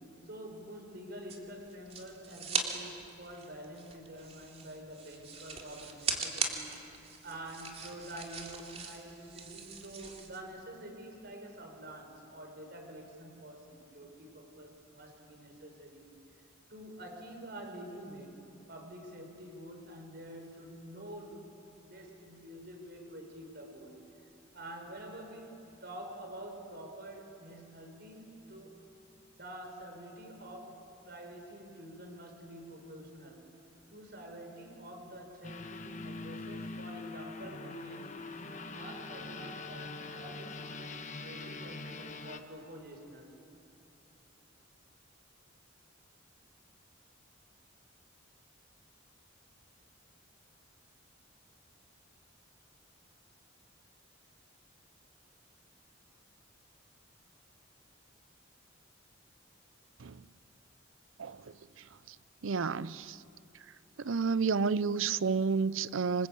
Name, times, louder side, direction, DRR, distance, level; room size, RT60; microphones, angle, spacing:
voice 1, 0.0-16.1 16.7-21.5 21.8-24.2 24.5-28.8 29.3-30.8 31.1-33.5 33.9-38.2 38.6-43.3, right 1 dB, 55° right, 3 dB, 5.1 m, -47 dB
sound 1, 1.3-2.7 3.0-10.4, right 5 dB, 30° right, 2.8 m, -39 dB
sound 2, 35.4-42.4, left 3 dB, 40° left, 1.2 m, -43 dB
voice 2, 62.4-63.0 64.0-66.3, right 5 dB, 80° right, 18 dB, 0.6 m, -30 dB
27.0 x 26.0 x 8.5 m, 2.7 s
head